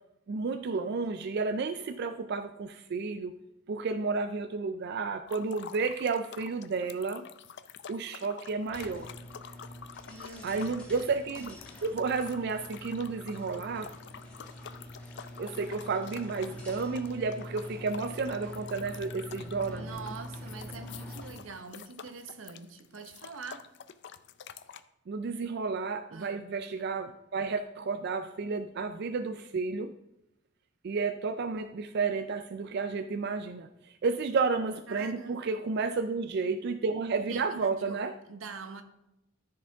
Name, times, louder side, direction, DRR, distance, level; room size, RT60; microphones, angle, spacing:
voice 1, 0.3-3.4 3.7-7.3 7.9-9.1 10.4-13.9 15.4-19.9 25.1-29.9 30.8-38.1, right 4 dB, 55° right, 0.4 m, -32 dB
sound 1, 5.3-24.8, left 7 dB, 60° left, 0.5 m, -48 dB
sound 2, 8.6-21.5, equal, 5° left, 2.2 m, -45 dB
voice 2, 10.0-10.8 19.7-23.7 26.1-26.5 34.9-35.5 37.3-38.0 38.3-38.8, right 4 dB, 85° right, 0.9 m, -44 dB
Walk footsteps, 17.7-21.8 22.1-22.2, right 1 dB, 35° right, 2.7 m, -58 dB
13.5 x 4.9 x 3.5 m
head